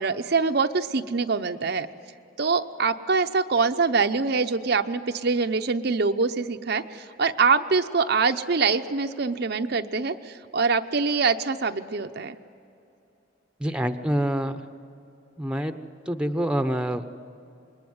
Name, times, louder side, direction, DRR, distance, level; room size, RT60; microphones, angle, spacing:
voice 1, 0.0-1.9 2.4-12.4, right 4 dB, 55° right, 7 dB, 0.7 m, -24 dB
voice 2, 13.6-14.6 15.4-15.8 16.1-17.1, equal, 5° right, 8 dB, 0.9 m, -26 dB
27.5 x 21.5 x 9.6 m, 2.7 s
head